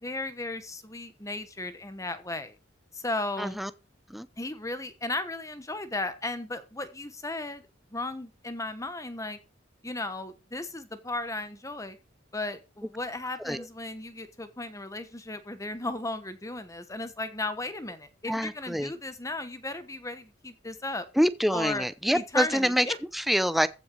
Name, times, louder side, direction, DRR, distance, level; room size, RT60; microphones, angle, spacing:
voice 1, 0.0-2.6 2.9-3.6 4.4-9.4 9.8-12.0 12.3-21.0 21.5-21.9 22.1-23.0, left 2 dB, 15° left, 1.2 m, -35 dB
voice 2, 3.4-3.7 4.1-4.3 13.4-13.7 18.3-18.9 21.2-22.9 23.1-23.7, equal, ahead, 0.6 m, -26 dB
14.5 x 5.8 x 5.5 m
head